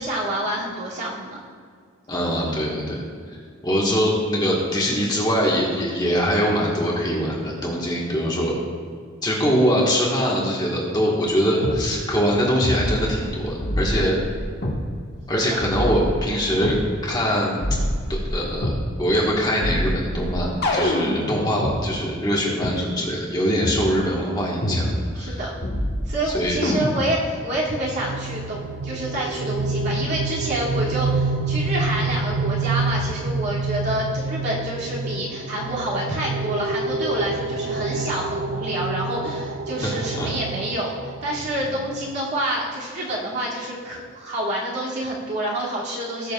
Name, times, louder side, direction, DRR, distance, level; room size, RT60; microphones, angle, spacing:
voice 1, 0.0-1.4 13.9-14.1 15.5-15.6 25.1-25.5 26.1-46.3, right 1 dB, 50° right, -7 dB, 2.6 m, -28 dB
voice 2, 2.1-3.0 3.6-8.6 9.2-14.2 15.3-16.8 17.0-17.6 18.1-24.9 25.1-25.4 26.3-26.6 39.8-40.3, equal, 20° left, -4 dB, 1.5 m, -23 dB
sound 1, 11.6-11.8 12.6-13.3 13.6-14.8 15.6-16.8 17.6-18.8 19.6-21.8 22.6-22.7 23.6-23.8 24.6-25.3 25.6-26.2 26.6-27.2, left 1 dB, 50° left, 1.4 m, -26 dB
sound 2, 27.5-42.3, right 3 dB, 65° right, 0.6 m, -28 dB
19.5 x 6.6 x 2.4 m, 2.1 s
head